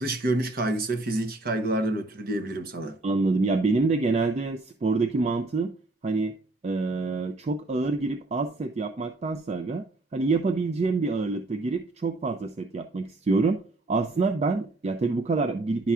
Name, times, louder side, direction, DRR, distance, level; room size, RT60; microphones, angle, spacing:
voice 1, 0.0-3.0, right 1 dB, 50° right, 0.8 m, -28 dB
voice 2, 3.0-5.7 6.0-6.3 6.6-9.8 10.1-13.6 13.9-15.9, right 3 dB, 35° right, 0.4 m, -26 dB
10.0 x 5.5 x 2.4 m
head